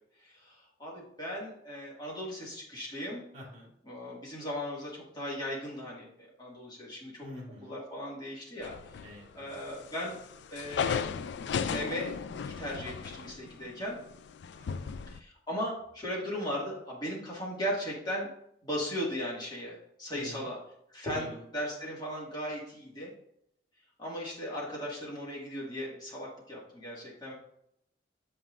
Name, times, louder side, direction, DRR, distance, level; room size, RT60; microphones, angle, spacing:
voice 1, 0.4-3.2 3.8-7.3 7.6-8.7 9.3-10.2 10.5-11.2 11.6-12.2 12.4-14.0 15.1-18.3 18.6-20.6 20.9-23.1 24.0-27.3, equal, 20° left, -5 dB, 1.9 m, -37 dB
voice 2, 3.3-3.7 7.2-7.7 9.0-9.6 14.5-14.9 20.1-20.5 21.1-21.4, left 1 dB, 40° right, -3 dB, 2.6 m, -46 dB
sound 1, 8.6-9.3 9.7-15.2, left 6 dB, 65° left, 0.3 m, -35 dB
7.7 x 5.7 x 2.5 m, 0.74 s
head